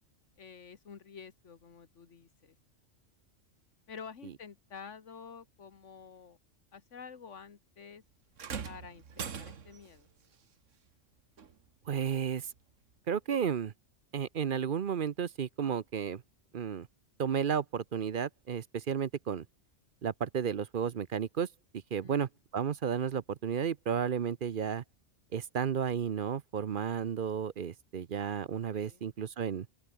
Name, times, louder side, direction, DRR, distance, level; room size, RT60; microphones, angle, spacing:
voice 1, 0.4-2.6 3.9-6.4 6.7-8.0 8.6-10.1 22.0-22.3 28.7-29.1, left 6 dB, 70° left, 1.9 m, -49 dB
sound 1, 8.4-9.9 11.4-11.5 12.4-12.5, right 6 dB, 80° right, 1.7 m, -41 dB
voice 2, 11.9-12.5 13.1-13.7 14.1-16.2 16.5-16.9 17.2-19.5 20.0-21.5 21.9-24.8 25.3-29.7, right 7 dB, 50° right, 0.8 m, -33 dB
open air
omnidirectional pair, 1.3 m